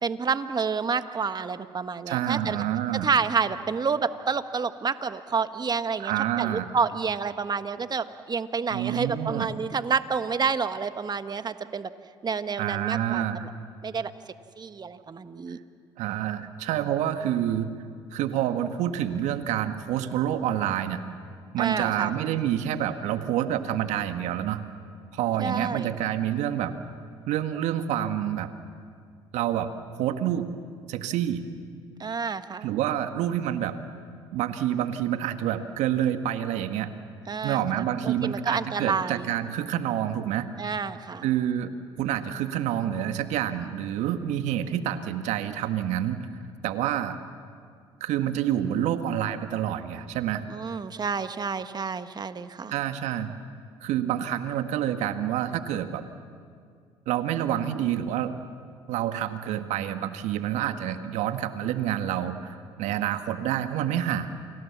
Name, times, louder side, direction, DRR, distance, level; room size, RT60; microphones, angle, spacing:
voice 1, 0.0-2.6 3.0-11.9 12.2-13.2 13.8-14.1 14.6-15.6 21.6-22.2 25.4-25.9 32.0-32.7 37.3-39.3 40.6-41.3 50.5-52.7, right 5 dB, 35° right, 10 dB, 1.4 m, -29 dB
voice 2, 2.1-3.1 6.0-6.8 8.7-9.5 12.6-13.5 16.0-17.7 18.1-21.0 21.5-24.6 25.1-26.8 27.3-28.5 29.3-29.7 30.0-30.5 30.9-31.4 32.6-33.7 34.3-36.9 37.4-40.5 41.2-41.7 42.0-46.2 46.6-47.2 48.0-50.4 52.7-53.4 53.8-56.1 57.1-58.3 58.9-64.3, right 11 dB, 70° right, 8 dB, 1.7 m, -28 dB
29.0 x 25.5 x 7.3 m, 2.2 s
hypercardioid pair, 60°, 13 cm